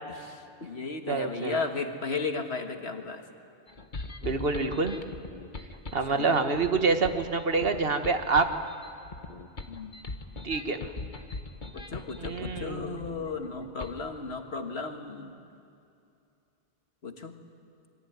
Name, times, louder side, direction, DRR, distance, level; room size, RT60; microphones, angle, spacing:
voice 1, 0.3-3.2 6.1-6.3 9.7-9.9 11.7-15.3 17.0-17.3, left 4 dB, 80° left, 5 dB, 2.0 m, -35 dB
voice 2, 1.1-1.6 4.2-5.0 5.9-8.5 10.4-10.8 12.2-13.1, right 4 dB, 65° right, 7 dB, 1.7 m, -27 dB
sound 1, 3.7-14.0, left 3 dB, 50° left, 1.6 m, -41 dB
27.5 x 22.5 x 9.5 m, 2.6 s
omnidirectional pair, 1.1 m